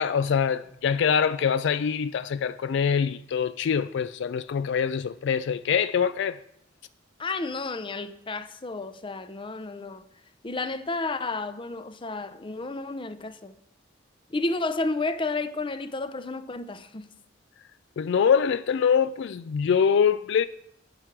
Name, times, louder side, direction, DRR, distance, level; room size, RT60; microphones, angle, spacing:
voice 1, 0.0-6.4 18.0-20.5, left 7 dB, 65° left, 0.3 m, -24 dB
voice 2, 7.2-10.0 10.4-13.5 14.3-17.1, left 3 dB, 25° left, 0.6 m, -31 dB
9.8 x 7.9 x 5.9 m
head